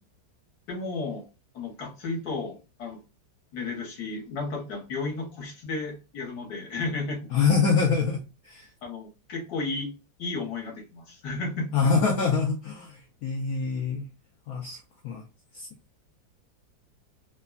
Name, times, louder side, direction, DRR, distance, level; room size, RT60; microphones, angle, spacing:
voice 1, 0.7-1.2 1.5-3.0 3.5-7.3 8.8-9.9 10.2-11.9, left 3 dB, 60° left, 1 dB, 1.3 m, -33 dB
voice 2, 7.3-8.7 11.7-14.1 14.5-15.3 15.5-15.7, left 5 dB, 80° left, 1 dB, 0.8 m, -25 dB
3.3 x 2.1 x 2.2 m, 0.30 s
omnidirectional pair, 2.1 m